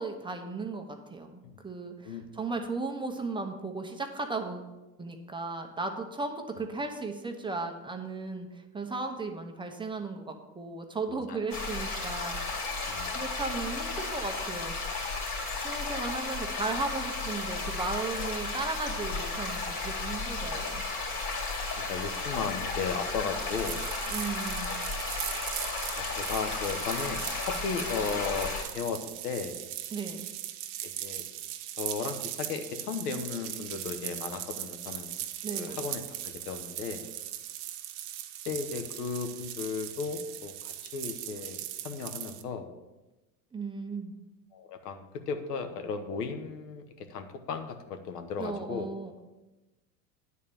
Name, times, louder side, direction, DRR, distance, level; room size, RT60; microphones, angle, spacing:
voice 1, 0.0-4.7 5.0-14.8 15.6-20.8 24.1-24.8 29.9-30.3 35.4-35.8 43.5-44.1 48.4-49.2, right 3 dB, 10° right, 3 dB, 0.9 m, -36 dB
voice 2, 11.1-11.4 12.9-13.2 21.8-23.8 25.3-25.4 26.0-29.6 30.8-31.2 31.8-35.1 35.5-37.0 38.5-41.6 41.8-42.7 44.5-48.9, left 5 dB, 90° left, 7 dB, 1.2 m, -35 dB
sound 1, 11.5-28.6, left 3 dB, 40° left, 2.9 m, -34 dB
sound 2, 23.5-42.4, right 12 dB, 60° right, 0.9 m, -39 dB
9.2 x 4.4 x 7.0 m, 1.1 s
supercardioid pair, 110°, 46 cm